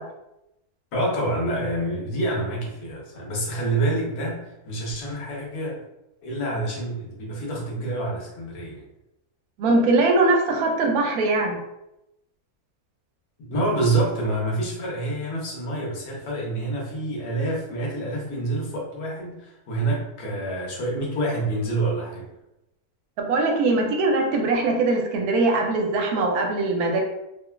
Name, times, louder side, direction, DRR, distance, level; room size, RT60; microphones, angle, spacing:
voice 1, 0.9-5.8 6.2-8.8 13.4-22.3, right 2 dB, 85° left, -3 dB, 1.3 m, -27 dB
voice 2, 9.6-11.6 23.2-27.0, right 2 dB, 80° right, 1 dB, 1.0 m, -21 dB
3.1 x 2.1 x 2.2 m, 0.90 s
omnidirectional pair, 1.6 m